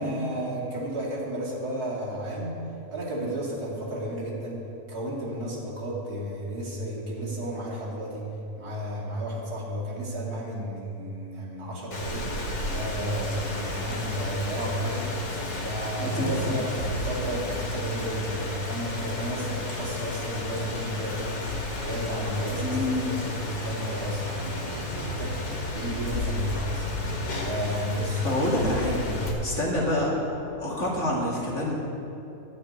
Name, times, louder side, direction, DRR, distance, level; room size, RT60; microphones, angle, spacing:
voice 1, 0.0-2.6 2.9-4.6 4.9-8.3 8.6-12.3 12.7-15.1 15.6-25.3 25.7-26.9 27.4-28.4 28.7-29.4, equal, 80° right, -5 dB, 3.0 m, -32 dB
Rain, 11.9-29.3, left 2 dB, 90° left, 2.4 m, -32 dB
voice 2, 16.0-16.6 22.6-23.0 28.2-28.9 29.4-30.1 30.6-31.7, left 1 dB, 50° left, -4 dB, 2.6 m, -27 dB
11.5 x 6.3 x 9.3 m, 2.9 s
omnidirectional pair, 1.6 m